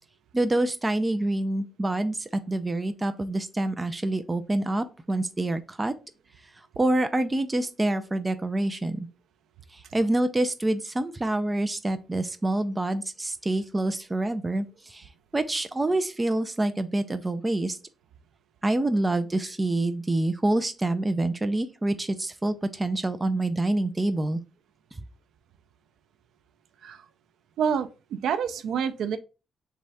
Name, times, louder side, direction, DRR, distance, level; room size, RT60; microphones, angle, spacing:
voice 1, 0.3-5.9 6.8-9.1 9.7-17.8 18.6-24.4, right 1 dB, 15° right, 0.3 m, -27 dB
voice 2, 27.6-29.2, right 7 dB, 70° right, 0.5 m, -28 dB
3.6 x 3.3 x 4.0 m
cardioid pair, 160°, 0 cm